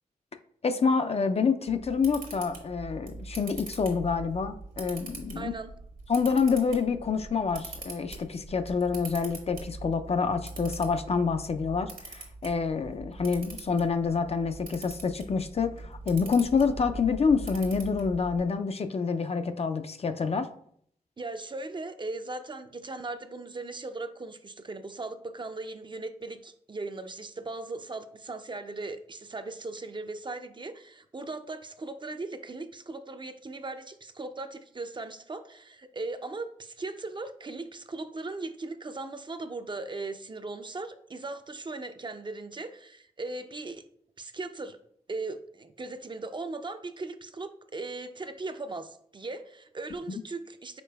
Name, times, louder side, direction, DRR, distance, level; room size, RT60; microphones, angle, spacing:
voice 1, 0.6-5.5 6.1-20.5 50.1-50.2, left 5 dB, 45° left, 8 dB, 0.4 m, -27 dB
Camera, 1.7-18.4, right 2 dB, 70° right, 1.2 m, -43 dB
voice 2, 5.4-5.7 21.2-43.8 44.2-44.8 45.1-50.8, right 3 dB, 30° right, 9 dB, 0.4 m, -38 dB
5.0 x 3.9 x 2.2 m, 0.66 s
cardioid pair, 40°, 15 cm